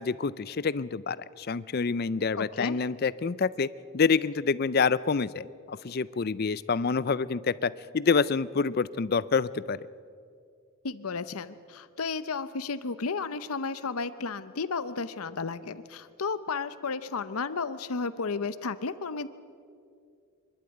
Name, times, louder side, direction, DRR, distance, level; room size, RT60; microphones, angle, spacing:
voice 1, 0.0-3.7 3.9-9.8, left 5 dB, 45° left, 18 dB, 0.4 m, -27 dB
voice 2, 2.4-2.8 10.8-19.3, left 4 dB, 80° left, 14 dB, 0.8 m, -33 dB
24.5 x 11.5 x 9.1 m, 2.3 s
head